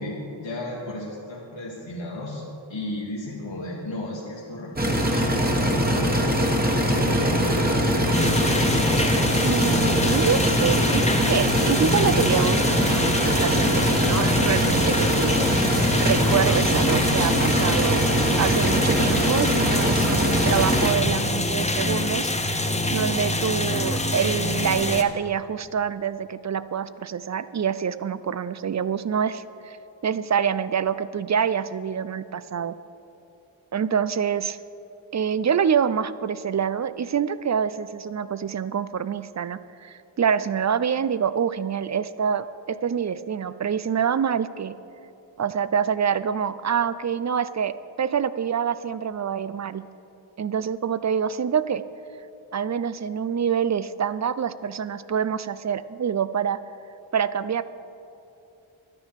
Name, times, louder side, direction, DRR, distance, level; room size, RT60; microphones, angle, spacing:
voice 1, 0.0-2.4 2.7-8.2, left 1 dB, 65° left, -5 dB, 1.8 m, -34 dB
sound 1, 4.8-20.9, equal, 20° right, 1.4 m, -22 dB
sound 2, 8.1-25.0, left 2 dB, 15° left, 0.7 m, -26 dB
voice 2, 9.4-15.7 16.0-18.1 18.4-29.8 30.0-32.8 33.7-34.6 35.1-44.7 45.4-49.8 50.4-51.8 52.5-56.6 57.1-57.6, right 7 dB, 40° right, 15 dB, 0.4 m, -26 dB
12.0 x 9.9 x 5.8 m, 2.7 s
wide cardioid pair, 85°, 48 cm